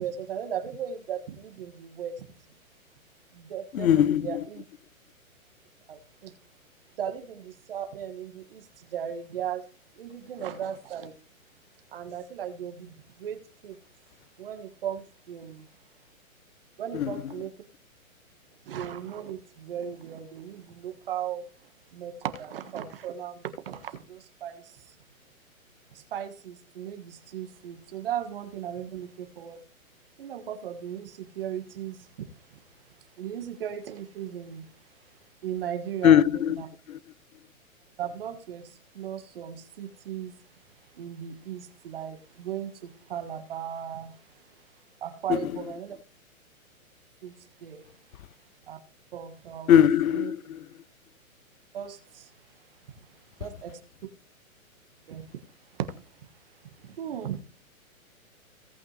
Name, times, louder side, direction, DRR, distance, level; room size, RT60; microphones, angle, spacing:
voice 1, 0.0-2.3 3.3-4.6 5.9-6.3 7.0-9.6 9.9-11.1 11.9-13.8 14.4-15.7 16.8-17.5 18.7-24.9 25.9-29.6 30.2-32.6 33.2-34.7 35.4-36.2 36.5-36.7 38.0-40.4 40.9-44.7 45.0-46.0 47.2-47.9 48.7-48.8 49.1-49.8 50.1-50.3 51.7-52.5 52.9-53.1 53.4-53.8 55.0-55.4 55.7-56.2 56.8-57.4, right 9 dB, 40° right, 1.5 m, -37 dB
voice 2, 3.8-4.2 36.0-36.5 49.7-50.4, left 9 dB, 75° left, 0.7 m, -19 dB
17.5 x 6.0 x 3.3 m
hypercardioid pair, 170°, 42 cm